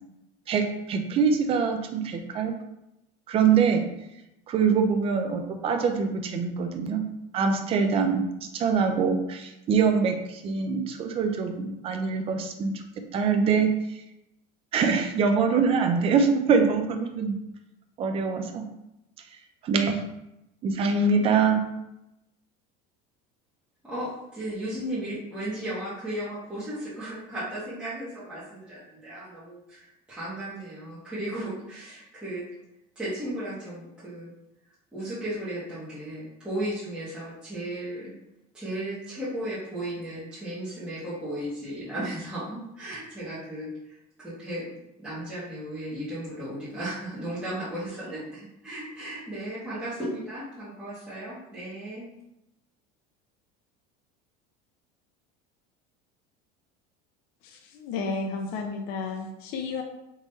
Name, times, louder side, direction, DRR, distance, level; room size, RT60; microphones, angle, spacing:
voice 1, 0.5-2.5 3.3-3.8 4.5-7.0 7.3-8.3 8.5-12.7 13.1-13.7 14.7-17.4 18.0-18.6 19.6-20.0 20.6-21.6, right 5 dB, 30° right, 5 dB, 0.5 m, -24 dB
voice 2, 23.8-32.4 32.9-34.3 34.9-38.1 38.5-44.6 45.0-52.1, right 1 dB, 5° right, -12 dB, 1.4 m, -35 dB
voice 3, 57.4-59.8, left 4 dB, 50° left, 2 dB, 0.6 m, -32 dB
3.7 x 3.0 x 4.0 m, 0.88 s
cardioid pair, 155°, 20 cm